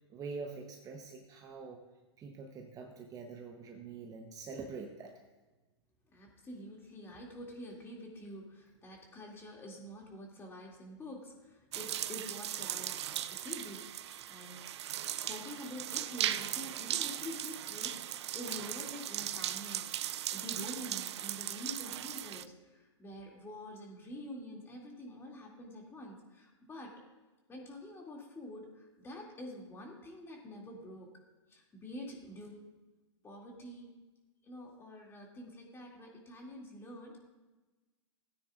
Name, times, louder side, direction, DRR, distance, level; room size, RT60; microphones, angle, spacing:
voice 1, 0.0-1.8 2.2-5.1, right 4 dB, 25° right, 3 dB, 0.9 m, -45 dB
voice 2, 6.1-14.7 15.3-26.9 27.5-31.1 31.5-32.6 33.2-33.9 34.4-37.3, left 1 dB, 15° left, -1 dB, 2.5 m, -47 dB
sound 1, 11.7-22.4, right 11 dB, 70° right, 0.5 m, -38 dB
17.0 x 9.3 x 2.5 m, 1.2 s
hypercardioid pair, 120°, 15 cm